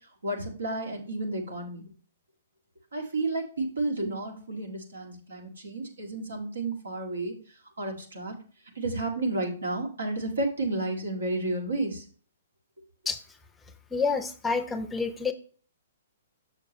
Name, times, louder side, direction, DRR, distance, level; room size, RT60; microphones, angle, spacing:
voice 1, 0.2-1.8 2.9-7.4 7.8-8.4 8.8-12.0, right 2 dB, 80° right, 1 dB, 2.0 m, -31 dB
voice 2, 13.9-15.3, left 4 dB, 10° left, 7 dB, 0.6 m, -28 dB
7.0 x 6.6 x 3.0 m, 0.43 s
figure-of-eight pair, 120°, 0 cm